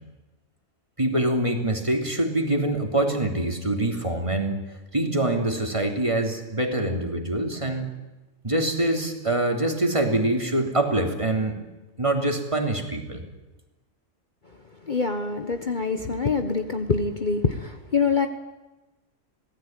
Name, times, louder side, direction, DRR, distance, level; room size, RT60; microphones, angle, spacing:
voice 1, 1.0-4.6 4.9-7.9 8.4-11.6 12.0-13.2, right 1 dB, 20° right, 3 dB, 3.3 m, -24 dB
voice 2, 14.8-18.3, left 4 dB, 35° left, 6 dB, 1.4 m, -25 dB
25.5 x 18.5 x 9.1 m, 1.1 s
omnidirectional pair, 1.4 m